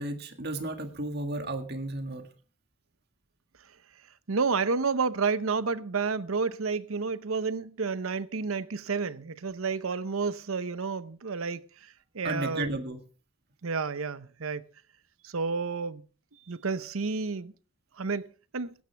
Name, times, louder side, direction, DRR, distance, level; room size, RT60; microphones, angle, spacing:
voice 1, 0.0-2.3 12.2-13.0, right 2 dB, 50° right, 1.8 m, -33 dB
voice 2, 4.3-12.7 13.6-14.6 15.2-16.0 16.5-17.5 18.0-18.7, right 4 dB, 80° right, 0.8 m, -30 dB
17.0 x 12.5 x 3.4 m
head